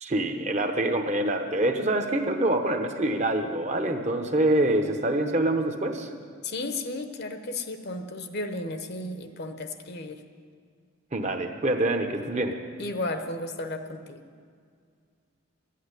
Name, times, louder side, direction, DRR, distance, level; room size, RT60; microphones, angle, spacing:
voice 1, 0.0-6.1 11.1-12.5, right 1 dB, 35° right, 6 dB, 0.9 m, -25 dB
voice 2, 6.4-10.2 12.8-14.2, left 2 dB, 50° left, 7 dB, 0.9 m, -34 dB
12.5 x 8.6 x 9.8 m, 2.1 s
head